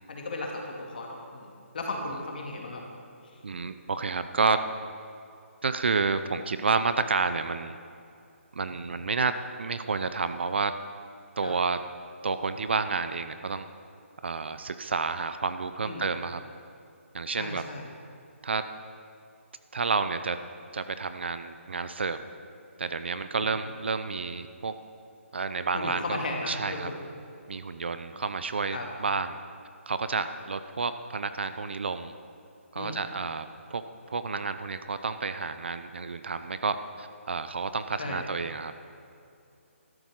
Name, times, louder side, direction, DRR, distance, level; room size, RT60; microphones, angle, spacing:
voice 1, 0.1-2.8 11.4-11.5 15.8-16.1 17.3-17.8 23.3-23.5 25.7-26.9 28.7-28.8 32.8-33.0 38.0-38.2, left 2 dB, 40° left, 0 dB, 2.1 m, -35 dB
voice 2, 3.4-4.6 5.6-7.8 8.5-9.3 9.6-10.7 11.4-11.8 12.2-13.7 14.2-16.4 17.1-17.6 18.4-18.6 19.7-20.4 20.7-22.2 22.8-24.7 25.3-26.9 27.5-29.4 29.9-32.1 32.7-33.8 34.1-38.8, right 4 dB, 50° right, 11 dB, 0.6 m, -30 dB
13.0 x 9.3 x 6.4 m, 2.6 s
hypercardioid pair, 175°, 7 cm